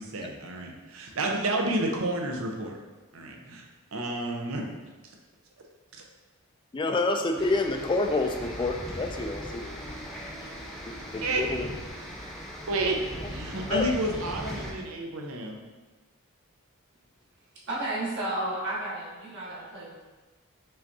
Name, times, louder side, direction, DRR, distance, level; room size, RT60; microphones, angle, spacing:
voice 1, 0.0-2.8 3.1-3.6 3.9-4.6 5.9-6.0 11.2-11.5 12.7-13.0 13.3-15.6, right 1 dB, 70° right, 1 dB, 0.7 m, -30 dB
voice 2, 6.7-9.6 10.9-11.7 13.7-13.9, left 2 dB, 20° left, 5 dB, 0.3 m, -28 dB
sound 1, 7.4-14.7, equal, ahead, 0.8 m, -39 dB
voice 3, 17.7-20.0, right 1 dB, 55° right, -6 dB, 1.3 m, -32 dB
5.4 x 3.4 x 2.7 m, 1.3 s
head